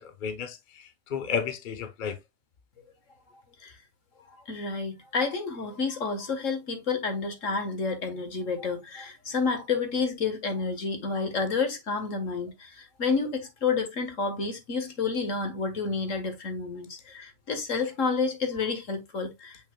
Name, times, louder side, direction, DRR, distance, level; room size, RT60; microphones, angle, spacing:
voice 1, 0.0-2.2, left 7 dB, 40° left, 0.8 m, -33 dB
voice 2, 4.3-19.7, left 4 dB, 65° left, 1.9 m, -30 dB
7.3 x 5.7 x 2.3 m
omnidirectional pair, 1.5 m